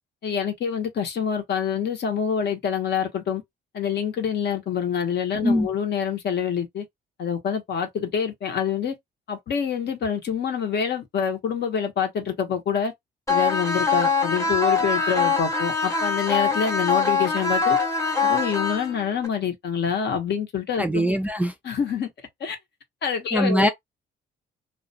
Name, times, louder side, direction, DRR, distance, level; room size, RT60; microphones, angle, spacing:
voice 1, 0.2-3.4 3.7-6.8 7.2-8.9 9.3-12.9 13.3-17.8 18.2-21.1 21.6-22.1 22.4-22.6 23.0-23.7, left 7 dB, 60° left, 0.8 m, -26 dB
sound 1, 13.3-19.3, left 4 dB, 15° left, 0.8 m, -23 dB
voice 2, 20.8-21.5 23.3-23.7, equal, 5° right, 0.3 m, -21 dB
2.3 x 2.2 x 2.6 m
cardioid pair, 90°, 20 cm